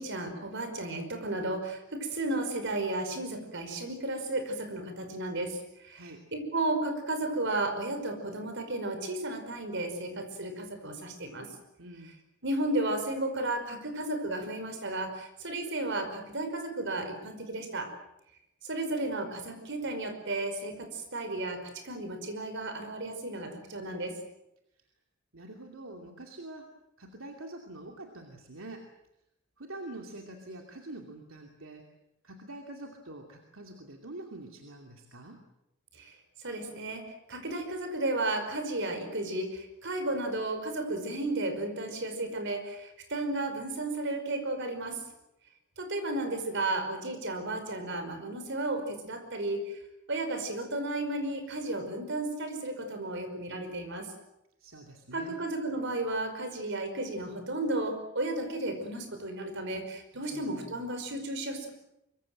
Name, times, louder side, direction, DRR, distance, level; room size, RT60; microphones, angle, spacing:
voice 1, 0.0-6.0 6.3-11.5 12.4-17.9 18.6-24.1 35.9-36.1 36.4-45.0 45.8-49.8 50.1-54.1 55.1-61.7, right 2 dB, 60° right, 7 dB, 5.3 m, -33 dB
voice 2, 5.9-6.3 11.8-12.1 25.3-26.7 27.0-28.9 29.6-31.8 32.2-35.4 54.6-55.4 60.1-60.9, right 2 dB, 80° right, 2 dB, 2.7 m, -45 dB
24.0 x 24.0 x 7.8 m, 0.83 s
head